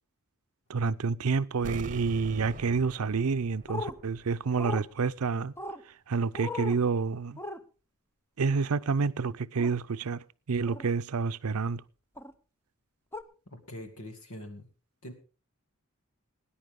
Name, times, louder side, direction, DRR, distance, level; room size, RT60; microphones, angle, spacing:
voice 1, 0.7-5.5 5.8-7.4 8.4-11.8, right 5 dB, 85° right, 0.6 m, -29 dB
sound 1, 1.6-4.5 4.8-4.9, right 2 dB, 35° right, 0.9 m, -43 dB
sound 2, 3.7-3.9 4.6-4.8 5.6-5.8 6.3-6.8 7.4-7.6 9.6-9.7 10.6-10.9 12.2-12.3 13.1-13.2, left 2 dB, 10° left, 0.7 m, -37 dB
voice 2, 13.5-14.7 15.0-15.1, left 1 dB, 85° left, 2.3 m, -43 dB
19.0 x 10.0 x 3.7 m
head